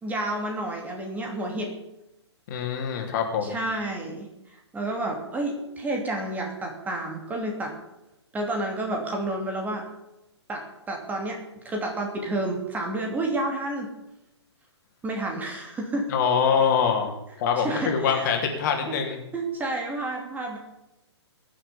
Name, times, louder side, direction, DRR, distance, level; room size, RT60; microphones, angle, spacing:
voice 1, 0.0-1.7 3.4-4.3 4.7-7.7 8.3-9.9 10.5-11.4 11.6-13.9 15.0-16.1 17.6-18.3 18.9-19.0 19.3-20.6, right 2 dB, 10° right, 1 dB, 2.8 m, -30 dB
voice 2, 2.5-3.6 16.1-17.1 17.4-19.2, left 6 dB, 40° left, 2 dB, 3.2 m, -24 dB
22.0 x 7.4 x 7.1 m, 0.90 s
figure-of-eight pair, 130°, 15 cm